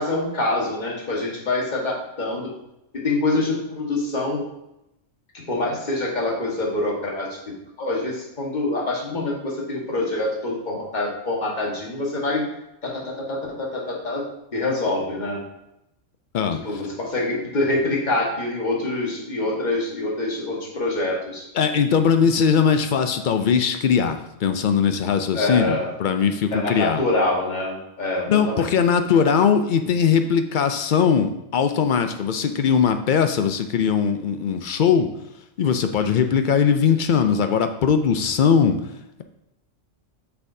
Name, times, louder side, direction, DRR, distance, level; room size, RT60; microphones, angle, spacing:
voice 1, 0.0-2.5 3.0-4.4 5.5-7.4 7.8-12.5 12.8-14.2 14.5-15.4 16.6-21.5 25.3-25.9 26.5-28.7, left 2 dB, 35° left, -3 dB, 1.6 m, -25 dB
voice 2, 16.3-16.8 21.5-27.0 28.3-35.1 35.6-38.8, left 7 dB, 65° left, 8 dB, 0.4 m, -20 dB
8.1 x 5.7 x 2.7 m, 0.86 s
omnidirectional pair, 1.4 m